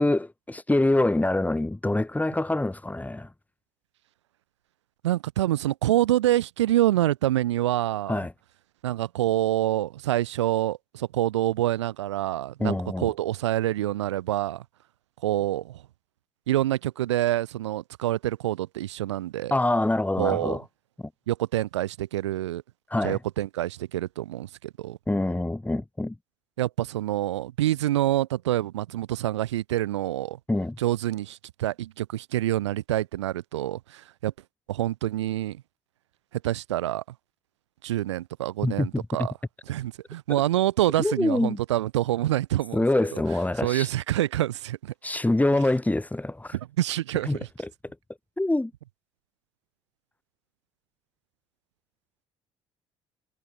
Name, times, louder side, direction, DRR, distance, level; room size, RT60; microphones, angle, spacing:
voice 1, 0.0-3.3 8.1-8.3 12.6-13.1 19.5-20.6 22.9-23.2 25.1-26.2 30.5-30.8 38.6-39.3 41.0-41.6 42.7-43.9 45.0-46.5 47.3-47.7 48.4-48.7, left 2 dB, 10° left, 2.3 m, -25 dB
voice 2, 5.0-8.2 8.8-14.6 15.2-15.8 16.5-19.5 20.2-20.6 21.3-22.6 23.0-25.0 26.6-30.4 30.8-34.3 34.7-35.6 36.3-37.0 37.8-39.3 39.7-42.8 43.1-43.2 43.6-44.9 46.5-47.5, right 14 dB, 90° right, 2.8 m, -26 dB
hypercardioid pair, 55°, 14 cm